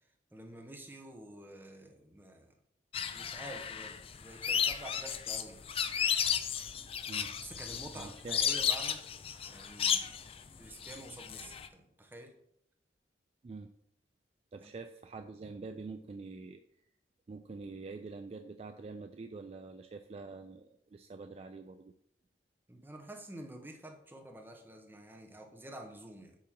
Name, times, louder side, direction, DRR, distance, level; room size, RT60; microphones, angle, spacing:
voice 1, 0.3-2.5 3.1-5.6 7.4-9.0 9.5-10.2 10.6-12.3 14.6-14.7 22.7-26.4, right 1 dB, 10° right, 2 dB, 0.9 m, -49 dB
sound 1, 2.9-11.7, left 8 dB, 35° left, 0.4 m, -34 dB
voice 2, 7.9-8.4 13.4-13.7 14.5-16.6 17.3-21.9, right 3 dB, 35° right, 7 dB, 0.3 m, -46 dB
8.5 x 2.9 x 6.0 m, 0.75 s
head